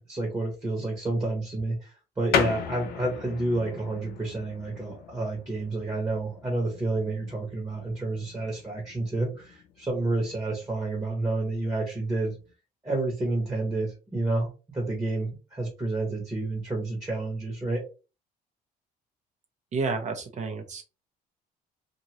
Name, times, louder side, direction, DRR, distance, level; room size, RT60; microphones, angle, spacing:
voice 1, 0.0-12.3 12.8-17.8, right 2 dB, 15° right, -2 dB, 1.1 m, -30 dB
sound 1, 2.3-12.5, left 8 dB, 65° left, 0.5 m, -37 dB
voice 2, 19.7-20.8, right 4 dB, 45° right, 5 dB, 0.8 m, -30 dB
2.6 x 2.6 x 3.0 m, 0.32 s
cardioid pair, 110°, 17 cm